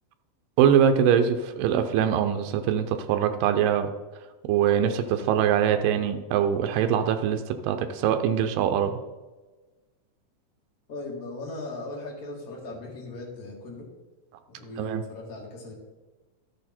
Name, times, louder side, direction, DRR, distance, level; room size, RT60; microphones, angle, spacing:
voice 1, 0.6-3.9 4.5-8.9 14.8-15.0, right 9 dB, 90° right, 7 dB, 2.3 m, -23 dB
voice 2, 10.9-13.9 14.6-15.7, left 2 dB, 30° left, -3 dB, 1.9 m, -38 dB
12.5 x 6.4 x 4.3 m, 1.2 s
omnidirectional pair, 3.8 m